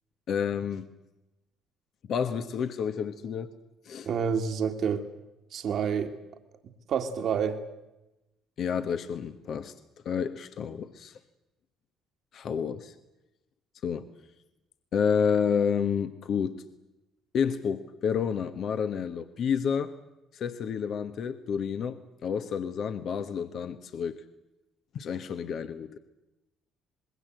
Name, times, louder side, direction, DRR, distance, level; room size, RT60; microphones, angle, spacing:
voice 1, 0.3-0.9 2.1-3.5 3.8-4.1 8.6-9.7 10.0-11.2 12.3-12.9 13.8-14.1 14.9-16.6 17.3-19.9 20.3-24.2 24.9-26.0, left 7 dB, 60° left, 1.3 m, -30 dB
voice 2, 4.1-5.1 5.5-6.1 6.9-7.6, right 7 dB, 60° right, 1.9 m, -28 dB
26.0 x 21.0 x 7.8 m
hypercardioid pair, 60°, 0 cm